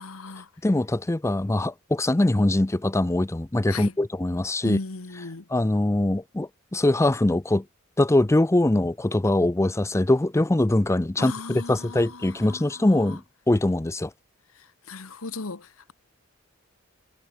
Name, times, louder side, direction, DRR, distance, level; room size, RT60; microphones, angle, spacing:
voice 1, 0.0-0.5 3.7-4.0 4.6-5.5 11.2-13.2 14.5-15.9, left 3 dB, 85° left, 1.3 m, -37 dB
voice 2, 0.6-4.8 5.5-7.6 8.0-14.1, left 1 dB, 15° left, 0.5 m, -22 dB
head